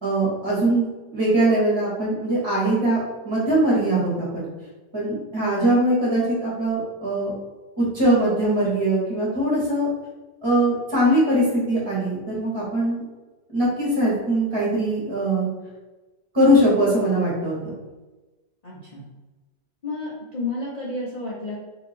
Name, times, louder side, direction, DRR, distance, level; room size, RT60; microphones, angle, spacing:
voice 1, 0.0-3.0 3.2-4.5 4.9-7.3 7.8-9.9 10.4-13.0 13.5-15.5 16.3-17.6, right 1 dB, 15° right, -6 dB, 1.2 m, -21 dB
voice 2, 18.6-19.1 19.8-21.6, left 2 dB, 70° left, -7 dB, 0.3 m, -31 dB
2.8 x 2.8 x 4.2 m, 1.2 s
omnidirectional pair, 1.8 m